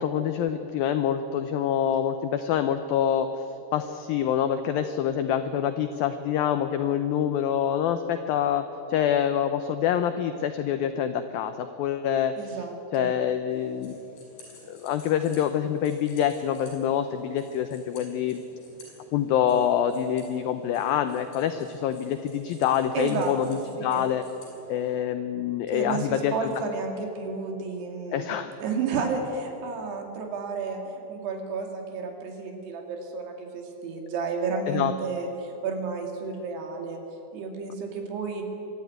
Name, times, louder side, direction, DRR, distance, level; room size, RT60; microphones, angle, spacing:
voice 1, 0.0-3.4 3.7-8.6 8.9-12.6 12.9-14.0 14.7-18.4 19.1-24.2 24.7-26.5 28.1-28.5 34.7-34.9, left 9 dB, 90° left, 9 dB, 2.0 m, -26 dB
voice 2, 12.4-13.1 22.9-24.1 25.7-28.3 28.6-30.8 31.1-37.0 37.3-38.4, right 4 dB, 70° right, 3 dB, 4.1 m, -31 dB
sound 1, 13.5-24.9, left 2 dB, 70° left, 8.0 m, -52 dB
24.0 x 13.0 x 9.3 m, 2.9 s
omnidirectional pair, 5.2 m